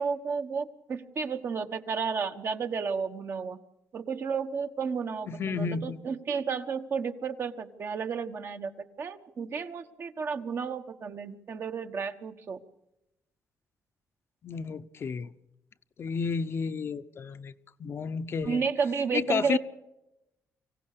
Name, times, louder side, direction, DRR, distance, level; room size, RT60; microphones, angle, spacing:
voice 1, 0.0-3.6 3.9-12.6 18.4-19.6, right 5 dB, 50° right, 1.3 m, -32 dB
voice 2, 5.3-6.0 14.4-15.3 16.0-17.5 17.8-18.6 19.1-19.6, left 5 dB, 45° left, 0.8 m, -31 dB
24.5 x 16.5 x 6.8 m
cardioid pair, 120°, 6 cm